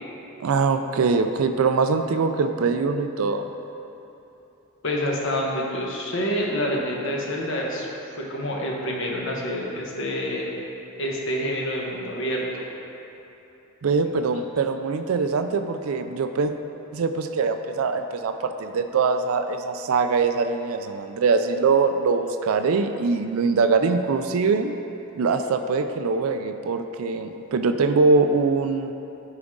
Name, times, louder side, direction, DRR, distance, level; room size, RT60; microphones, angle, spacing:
voice 1, 0.4-3.5 13.8-16.5 16.9-24.7 25.2-28.9, right 4 dB, 85° right, 7 dB, 0.4 m, -23 dB
voice 2, 4.8-7.9 8.1-10.5 11.0-12.6 14.2-14.3, equal, 65° left, -2 dB, 1.2 m, -27 dB
11.5 x 4.9 x 3.7 m, 3.0 s
head